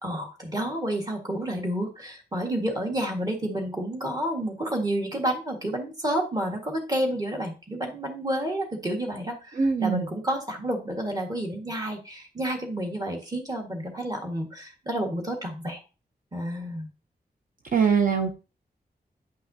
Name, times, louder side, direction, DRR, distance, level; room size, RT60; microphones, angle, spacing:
voice 1, 0.0-15.8 16.3-16.9, right 1 dB, 20° right, 1 dB, 1.6 m, -30 dB
voice 2, 9.6-10.0 17.7-18.4, right 6 dB, 55° right, 5 dB, 0.7 m, -22 dB
9.7 x 5.6 x 2.7 m, 0.32 s
wide cardioid pair, 175°, 17 cm